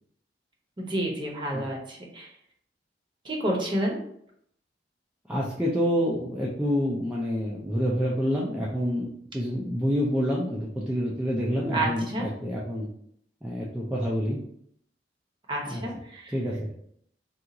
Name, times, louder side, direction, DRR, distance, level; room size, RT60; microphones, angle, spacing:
voice 1, 0.8-2.3 3.2-4.0 11.7-12.3 15.5-16.3, right 1 dB, 25° right, -1 dB, 0.7 m, -29 dB
voice 2, 5.3-12.9 13.4-14.4 15.7-15.8 16.3-16.7, equal, 5° right, -5 dB, 0.4 m, -27 dB
2.8 x 2.4 x 3.7 m, 0.69 s
head